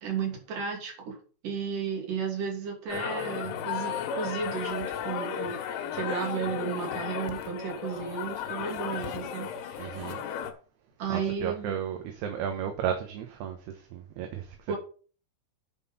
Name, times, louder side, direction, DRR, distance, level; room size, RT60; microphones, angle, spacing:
voice 1, 0.0-1.2 1.4-5.6 5.9-10.0 11.0-11.8 14.7-14.8, right 6 dB, 50° right, 4.2 m, -33 dB
sound 1, 2.9-10.5, left 8 dB, 90° left, 3.8 m, -34 dB
voice 2, 9.8-10.2 11.1-14.6, right 8 dB, 70° right, 3.0 m, -34 dB
9.3 x 6.5 x 5.7 m
omnidirectional pair, 5.4 m